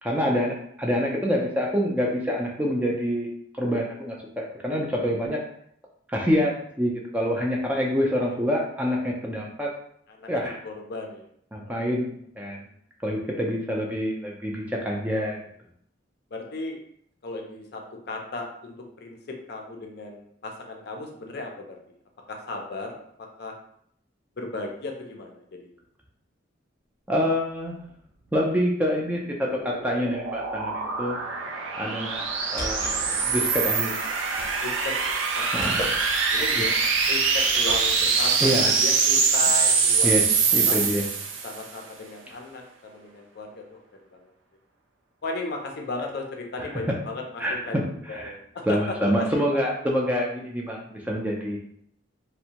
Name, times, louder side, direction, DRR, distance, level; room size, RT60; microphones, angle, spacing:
voice 1, 0.0-3.3 3.5-5.4 6.1-9.7 10.3-10.5 11.5-12.1 12.4-12.6 13.0-15.4 27.1-27.8 28.3-31.2 31.8-32.3 32.5-33.9 35.5-35.8 38.4-38.7 40.0-40.2 40.5-41.0 47.4-47.8 48.1-48.3 48.7-51.6, equal, 10° right, -2 dB, 0.3 m, -26 dB
voice 2, 7.8-8.5 10.1-10.3 10.6-11.3 11.7-11.8 16.3-16.8 17.2-21.8 22.3-22.9 23.2-23.5 24.4-25.8 34.6-35.7 36.3-36.7 37.1-40.2 40.5-40.8 41.4-44.3 45.2-47.8 48.1-49.6, left 3 dB, 55° left, 2 dB, 0.5 m, -36 dB
sound 1, 29.0-41.6, right 5 dB, 85° right, 0.4 m, -24 dB
sound 2, 32.1-38.1, equal, 15° left, 0.8 m, -38 dB
2.6 x 2.1 x 2.8 m, 0.67 s
head